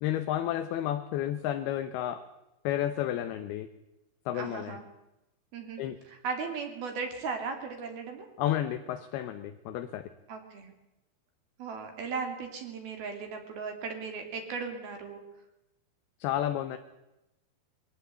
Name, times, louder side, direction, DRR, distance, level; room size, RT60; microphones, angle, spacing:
voice 1, 0.0-2.2 2.6-3.7 4.3-4.8 5.8-6.0 8.4-10.1 16.2-16.8, left 11 dB, 75° left, 8 dB, 2.6 m, -31 dB
voice 2, 4.3-4.8 5.5-8.3 10.3-10.7 11.6-15.2, right 5 dB, 60° right, 4 dB, 4.4 m, -37 dB
23.0 x 17.5 x 8.3 m, 0.94 s
omnidirectional pair, 5.2 m